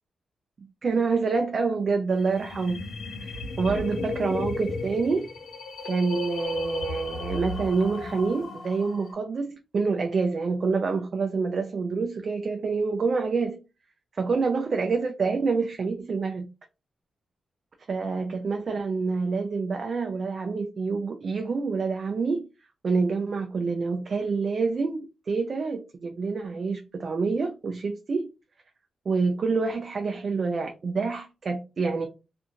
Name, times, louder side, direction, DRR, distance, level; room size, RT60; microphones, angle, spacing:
voice 1, 0.8-2.8 3.2-3.3 3.6-5.3 5.8-13.6 14.1-16.4 17.9-22.5 22.8-28.3 29.1-32.1, right 4 dB, 55° right, 0.4 m, -27 dB
sound 1, 2.1-9.1, left 3 dB, 75° left, 0.8 m, -35 dB
2.5 x 2.4 x 2.7 m
cardioid pair, 85°, 0 cm